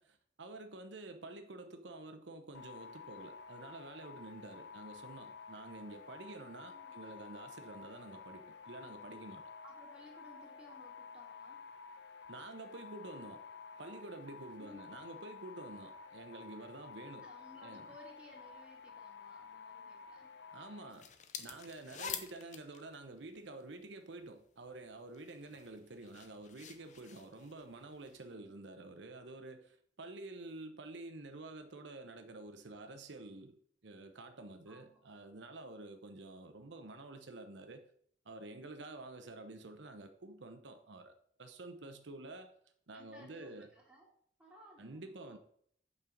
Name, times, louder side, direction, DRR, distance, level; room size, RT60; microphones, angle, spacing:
voice 1, 0.0-9.4 12.3-13.4 13.8-17.3 17.6-17.9 20.5-21.1 21.4-33.6 33.8-37.8 38.2-42.5 42.9-43.7 44.8-45.4, right 2 dB, 80° right, 0.9 m, -49 dB
sound 1, 2.5-20.9, left 5 dB, 70° left, 0.9 m, -52 dB
voice 2, 6.7-7.0 9.6-11.7 14.6-15.1 17.2-20.5 28.3-28.5 34.7-35.0 42.9-44.1 44.4-45.4, left 1 dB, 5° right, 2.4 m, -59 dB
sound 2, 20.9-24.0 24.7-28.2, left 7 dB, 40° left, 0.7 m, -48 dB
8.4 x 5.5 x 5.2 m
head